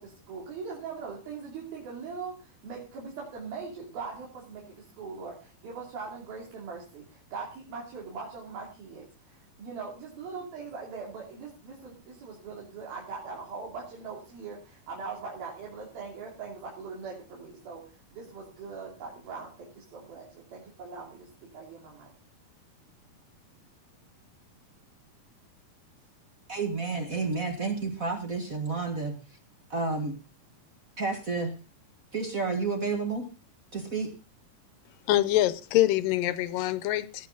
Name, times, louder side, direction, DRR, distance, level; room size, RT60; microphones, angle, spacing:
voice 1, 0.0-17.8 18.1-22.1, right 5 dB, 85° right, -3 dB, 4.8 m, -41 dB
voice 2, 26.5-29.2 29.7-30.2 31.0-31.5 32.1-33.3 33.7-34.1, right 4 dB, 35° right, 4 dB, 1.5 m, -30 dB
voice 3, 35.1-37.3, left 15 dB, 75° left, 15 dB, 2.4 m, -25 dB
18.0 x 9.2 x 4.0 m, 0.33 s
omnidirectional pair, 4.1 m